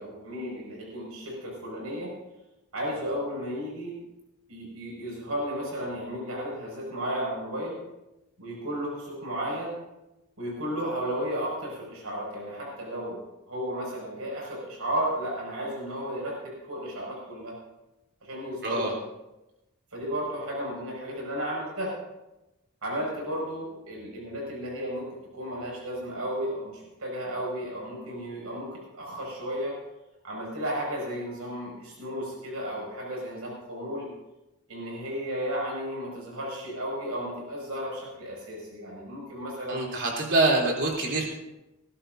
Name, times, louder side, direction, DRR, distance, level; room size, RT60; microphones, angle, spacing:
voice 1, 0.0-2.1 2.7-3.9 4.5-7.8 8.4-9.8 10.4-13.2 13.5-17.6 18.2-18.9 19.9-22.0 22.8-29.8 30.2-34.1 34.7-39.8, equal, 80° right, -2 dB, 6.0 m, -33 dB
voice 2, 39.7-41.2, right 2 dB, 55° right, -1 dB, 3.5 m, -25 dB
20.0 x 16.0 x 2.7 m, 0.98 s
head